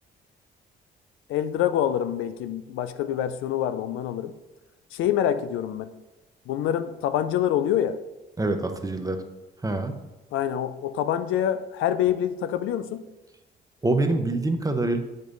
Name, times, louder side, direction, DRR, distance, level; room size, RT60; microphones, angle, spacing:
voice 1, 1.3-4.3 4.9-5.9 6.5-8.0 10.3-13.0, left 10 dB, 90° left, 11 dB, 0.5 m, -26 dB
voice 2, 8.4-9.2 9.6-10.0 13.8-15.0, right 2 dB, 15° right, 6 dB, 0.8 m, -25 dB
7.6 x 5.2 x 3.9 m, 1.1 s
cardioid pair, 90°, 20 cm